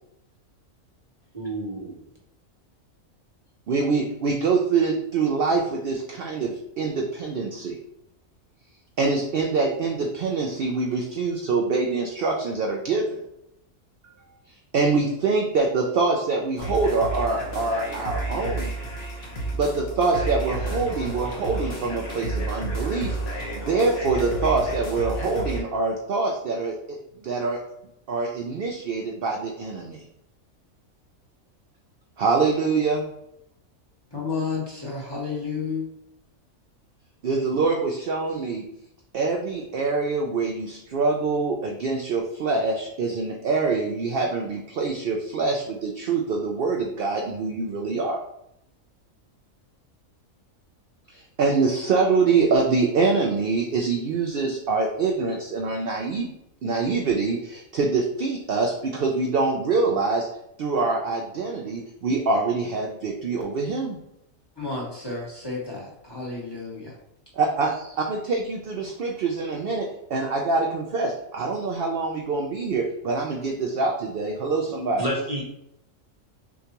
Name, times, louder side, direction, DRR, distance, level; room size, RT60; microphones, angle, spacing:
voice 1, 1.3-2.0 75.0-75.4, right 1 dB, 30° right, 0.9 m, -29 dB
voice 2, 3.7-7.8 9.0-13.2 14.7-18.7 19.5-23.2 23.5-27.6 28.1-30.0 32.2-33.0 37.2-38.6 39.1-48.2 51.1-56.3 56.6-60.3 60.6-64.0 67.3-75.0, right 4 dB, 60° right, 0.6 m, -25 dB
sound 1, 16.6-25.6, right 1 dB, 50° left, 1.1 m, -31 dB
voice 3, 34.1-35.8 64.6-66.9, left 4 dB, 20° left, 1.0 m, -31 dB
6.3 x 2.3 x 2.9 m
omnidirectional pair, 1.4 m